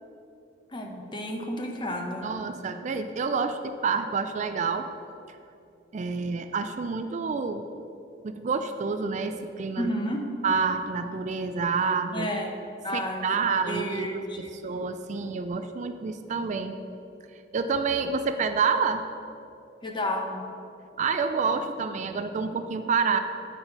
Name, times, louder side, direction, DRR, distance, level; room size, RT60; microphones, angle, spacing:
voice 1, 0.7-2.3 9.8-10.3 12.1-12.6 12.8-14.6 19.8-20.5, equal, 25° left, 3 dB, 0.8 m, -31 dB
voice 2, 2.2-4.9 5.9-7.6 8.2-9.9 10.4-12.3 12.9-14.1 14.4-16.7 17.5-19.0 21.0-23.2, right 5 dB, 40° right, 8 dB, 0.3 m, -28 dB
9.6 x 4.0 x 5.8 m, 2.7 s
head